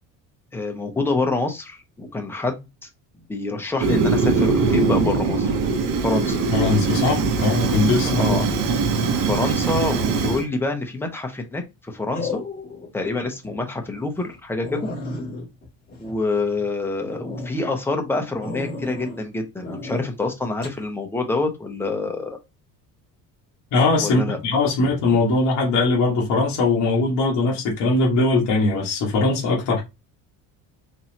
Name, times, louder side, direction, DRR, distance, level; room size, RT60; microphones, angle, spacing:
voice 1, 0.5-2.7 3.3-5.5 6.0-6.4 8.0-8.5 9.2-12.4 12.9-14.9 16.0-22.4 24.0-24.4, left 3 dB, 5° left, 0.5 m, -26 dB
Fire, 3.8-10.4, right 4 dB, 65° right, 0.9 m, -21 dB
voice 2, 6.5-8.4 23.7-29.8, left 3 dB, 55° left, 1.4 m, -20 dB
sound 1, 10.5-10.9 12.1-12.9 13.3-13.5 13.9-14.0 14.3-14.4 14.6-16.7 17.1-17.5 18.4-19.2 19.6-20.0 20.6-20.8, left 2 dB, 25° left, 2.1 m, -33 dB
4.2 x 3.0 x 2.8 m
cardioid pair, 175°, 35 cm